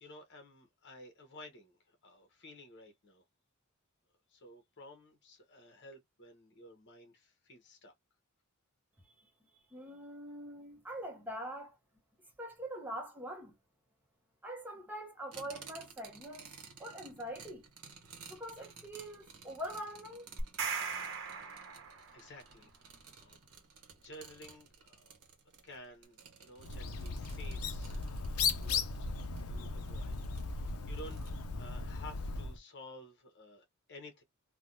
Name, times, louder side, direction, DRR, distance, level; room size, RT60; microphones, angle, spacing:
voice 1, 0.0-3.2 4.3-7.9 21.1-21.5 22.1-22.7 23.2-23.4 24.0-25.1 25.6-30.2 30.5-34.2, left 1 dB, 50° left, 1.0 m, -53 dB
voice 2, 9.5-11.8 12.4-13.5 14.4-16.5 16.8-17.7 18.3-20.3, equal, 10° right, 0.8 m, -43 dB
sound 1, 15.3-31.3, right 6 dB, 85° right, 1.0 m, -56 dB
sound 2, 20.4-22.4, right 5 dB, 60° right, 0.9 m, -38 dB
Bird, 26.6-32.6, left 4 dB, 70° left, 0.5 m, -37 dB
3.3 x 2.2 x 2.6 m
head